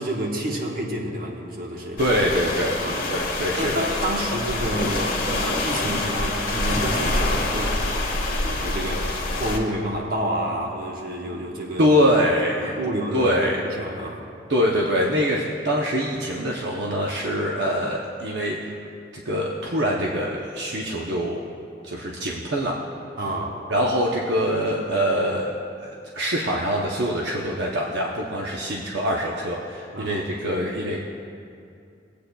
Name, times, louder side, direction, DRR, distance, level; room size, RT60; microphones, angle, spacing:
voice 1, 0.0-2.0 2.7-3.3 3.5-11.9 12.6-14.3 23.2-23.6 29.9-30.6, right 1 dB, 55° right, 0 dB, 1.2 m, -29 dB
sound 1, 2.0-9.6, left 2 dB, 50° left, 1.4 m, -26 dB
voice 2, 2.0-3.9 11.8-12.8 13.1-13.6 14.5-18.7 19.1-21.5 21.8-22.8 23.7-31.0, equal, 70° right, -2 dB, 0.7 m, -24 dB
20.0 x 8.4 x 2.3 m, 2.5 s
head